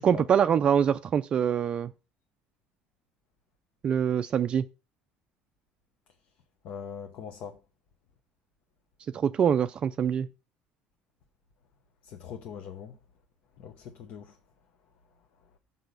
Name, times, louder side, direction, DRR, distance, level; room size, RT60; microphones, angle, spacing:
voice 1, 0.0-1.9 3.8-4.6 9.1-10.3, right 8 dB, 30° right, 0.3 m, -24 dB
voice 2, 6.6-7.6 12.0-13.0 13.6-14.4, left 7 dB, 55° left, 1.0 m, -41 dB
6.0 x 5.5 x 6.7 m
cardioid pair, 150°, 3 cm